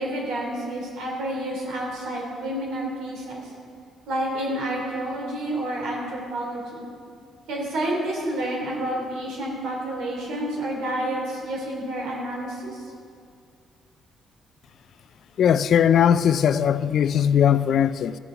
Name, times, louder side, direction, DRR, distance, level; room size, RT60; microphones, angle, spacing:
voice 1, 0.0-3.5 4.1-6.8 7.5-12.8, right 1 dB, 90° right, -2 dB, 3.2 m, -29 dB
voice 2, 15.4-18.2, left 8 dB, 65° left, 15 dB, 0.4 m, -19 dB
14.5 x 7.0 x 5.6 m, 2.3 s
cardioid pair, 90°, 0 cm